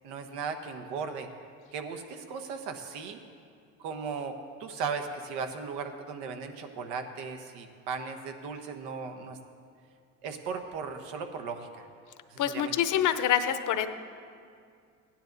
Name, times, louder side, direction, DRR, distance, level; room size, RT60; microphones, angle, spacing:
voice 1, 0.0-1.3 1.7-3.2 3.8-9.4 10.2-11.9 12.3-12.7, right 5 dB, 75° right, 6 dB, 1.3 m, -37 dB
voice 2, 12.4-13.9, left 10 dB, 45° left, 10 dB, 0.9 m, -26 dB
16.0 x 10.0 x 4.0 m, 2.3 s
supercardioid pair, 90°, 42 cm